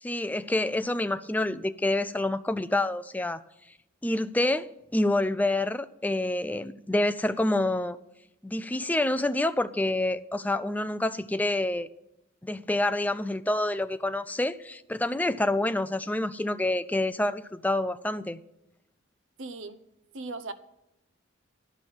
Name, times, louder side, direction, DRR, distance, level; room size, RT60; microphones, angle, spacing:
voice 1, 0.0-3.4 4.0-8.0 8.4-11.9 12.4-18.4, left 1 dB, 10° left, 0.3 m, -27 dB
voice 2, 19.4-19.8 20.1-20.5, right 3 dB, 65° right, 0.7 m, -37 dB
11.5 x 6.1 x 8.9 m
head